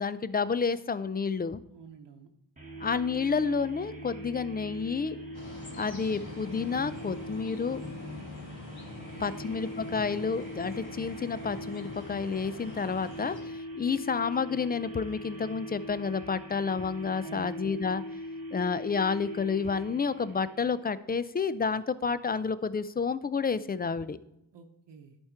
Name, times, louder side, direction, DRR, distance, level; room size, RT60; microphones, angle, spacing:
voice 1, 0.0-1.6 2.8-5.2 5.8-7.8 9.2-18.0 18.5-24.2, left 5 dB, 25° left, 15 dB, 0.4 m, -30 dB
voice 2, 1.7-2.3 9.0-9.3 17.2-17.6 24.5-25.2, right 5 dB, 75° right, 2 dB, 0.9 m, -49 dB
sound 1, 2.6-20.8, equal, 20° right, 1.6 m, -42 dB
sound 2, 5.3-13.4, left 2 dB, 60° left, 2.4 m, -44 dB
11.0 x 4.4 x 4.5 m, 0.82 s
cardioid pair, 70°, 43 cm